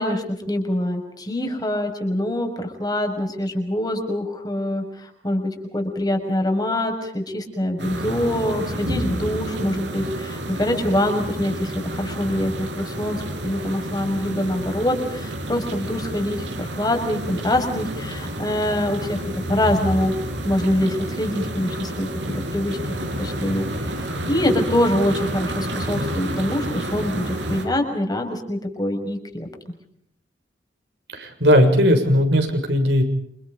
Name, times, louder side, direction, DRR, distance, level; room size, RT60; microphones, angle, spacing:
voice 1, 0.0-19.2 19.5-20.1 20.4-22.1 22.3-22.8 23.2-23.7 24.3-29.5, left 1 dB, 20° left, 5 dB, 6.2 m, -24 dB
sound 1, 7.8-27.6, right 1 dB, 90° right, 6.5 m, -30 dB
voice 2, 31.1-33.1, equal, 75° right, 5 dB, 6.9 m, -17 dB
29.5 x 28.0 x 5.3 m, 0.74 s
head